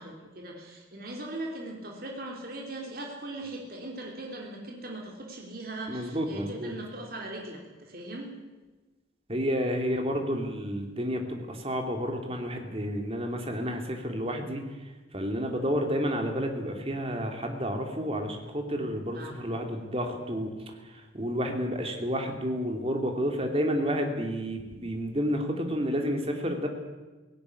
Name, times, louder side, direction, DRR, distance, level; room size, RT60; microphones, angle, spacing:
voice 1, 0.0-8.3 19.1-19.5, right 1 dB, 50° right, 0 dB, 3.2 m, -39 dB
voice 2, 5.9-6.7 9.3-14.6 15.1-20.5 21.1-26.7, equal, 30° right, 4 dB, 2.8 m, -30 dB
18.0 x 17.0 x 9.8 m, 1.2 s
head